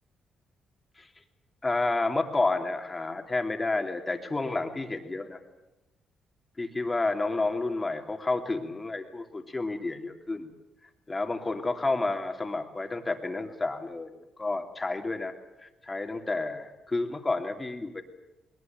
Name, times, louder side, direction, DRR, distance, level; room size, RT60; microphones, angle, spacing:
voice 1, 1.6-5.4 6.6-10.5 11.1-15.3 15.6-18.0, left 2 dB, 20° left, 5 dB, 3.0 m, -30 dB
21.0 x 19.5 x 9.3 m, 0.97 s
cardioid pair, 90°, 0 cm